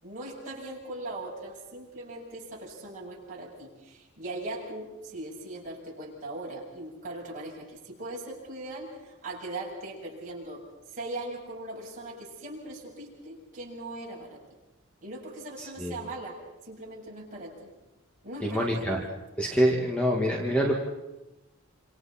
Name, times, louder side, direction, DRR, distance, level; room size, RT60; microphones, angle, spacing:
voice 1, 0.0-10.6 10.9-14.4 15.0-17.7 18.2-19.1, right 2 dB, 35° right, -4 dB, 7.5 m, -40 dB
voice 2, 15.6-16.0 18.4-19.0 19.4-20.7, equal, 5° left, -2 dB, 2.0 m, -26 dB
28.5 x 27.0 x 4.4 m, 1.0 s
head